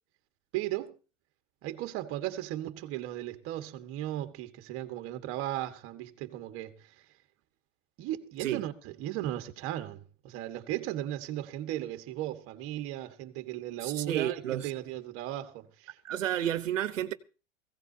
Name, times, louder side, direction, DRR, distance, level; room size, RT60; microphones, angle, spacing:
voice 1, 0.5-1.0 1.6-7.0 8.0-16.0, right 13 dB, 35° right, 1.6 m, -36 dB
voice 2, 13.8-14.7 16.0-17.1, right 11 dB, 85° right, 1.2 m, -31 dB
19.5 x 16.0 x 2.8 m
hypercardioid pair, 135°, 37 cm